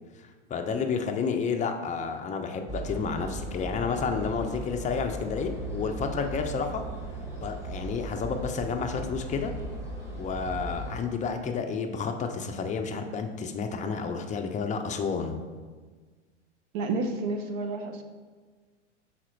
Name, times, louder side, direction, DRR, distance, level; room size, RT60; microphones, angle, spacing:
voice 1, 0.5-6.8 7.4-9.5 10.2-15.4, left 5 dB, 20° left, 5 dB, 0.6 m, -30 dB
sound 1, 2.7-11.0, right 2 dB, 10° right, 1.8 m, -37 dB
voice 2, 16.7-18.0, right 3 dB, 50° right, 6 dB, 0.9 m, -30 dB
6.1 x 4.2 x 4.5 m, 1.5 s
hypercardioid pair, 100°, 36 cm